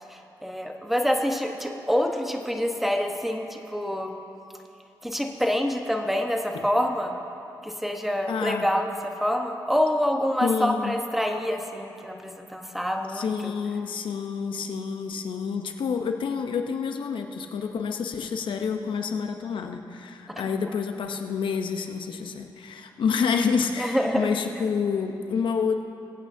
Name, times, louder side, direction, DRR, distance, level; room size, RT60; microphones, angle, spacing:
voice 1, 0.1-4.2 5.0-7.1 7.6-13.5 20.5-20.7 23.8-24.4, equal, ahead, 3 dB, 1.1 m, -27 dB
voice 2, 8.3-8.7 10.4-11.0 13.1-25.8, left 6 dB, 80° left, 6 dB, 0.8 m, -28 dB
21.5 x 8.7 x 2.7 m, 2.8 s
cardioid pair, 60°, 8 cm